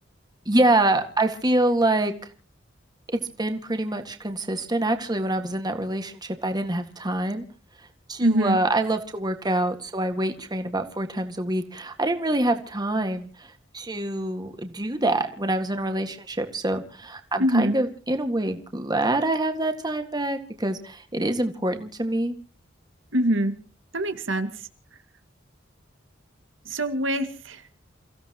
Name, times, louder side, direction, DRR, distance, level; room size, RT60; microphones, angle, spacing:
voice 1, 0.5-2.1 3.1-7.5 8.1-13.5 13.7-22.3, right 1 dB, 20° right, 7 dB, 1.8 m, -25 dB
voice 2, 8.2-8.6 17.4-17.8 23.1-23.5 23.9-24.5 26.7-27.6, right 1 dB, 85° right, 8 dB, 2.1 m, -23 dB
29.5 x 16.0 x 3.0 m, 0.39 s
head